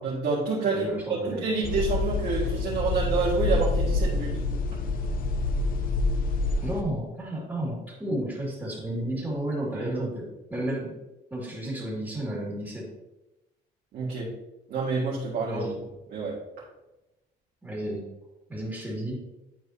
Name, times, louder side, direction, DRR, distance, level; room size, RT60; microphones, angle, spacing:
voice 1, 0.0-4.4 9.7-10.0 13.9-14.3 14.7-15.7 16.1-16.3, right 4 dB, 65° right, -7 dB, 2.0 m, -28 dB
voice 2, 0.7-1.4 6.6-10.9 11.3-12.9 15.5-15.8 17.6-18.1 18.5-19.2, right 1 dB, 10° right, -5 dB, 2.5 m, -32 dB
sound 1, 1.6-6.8, left 3 dB, 55° left, 0.9 m, -27 dB
10.5 x 4.7 x 2.9 m, 1.0 s
cardioid pair, 110°, 17 cm